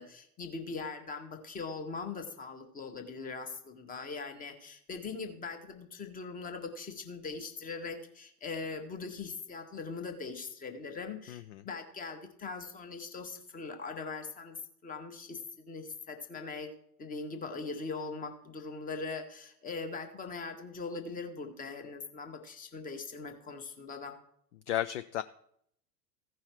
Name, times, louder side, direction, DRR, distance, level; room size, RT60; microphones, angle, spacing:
voice 1, 0.0-24.2, left 4 dB, 15° left, 6 dB, 1.2 m, -41 dB
voice 2, 11.3-11.6 24.7-25.2, left 12 dB, 50° left, 12 dB, 0.4 m, -33 dB
15.0 x 5.5 x 4.4 m, 0.69 s
figure-of-eight pair, 90°, 48 cm